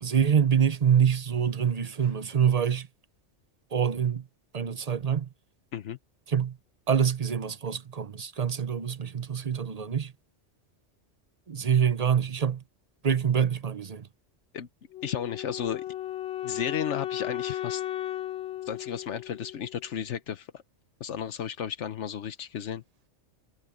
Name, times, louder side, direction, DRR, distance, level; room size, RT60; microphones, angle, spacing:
voice 1, 0.0-2.9 3.7-4.2 4.5-5.3 6.3-6.6 6.9-10.1 11.5-12.6 13.0-14.1, right 8 dB, 40° right, 0.8 m, -25 dB
Wind instrument woodwind instrument, 14.9-20.0, left 13 dB, 60° left, 1.4 m, -35 dB
voice 2, 15.0-15.8 16.4-17.8 18.6-20.6 21.0-22.8, left 8 dB, 85° left, 1.2 m, -33 dB
omnidirectional pair, 1.2 m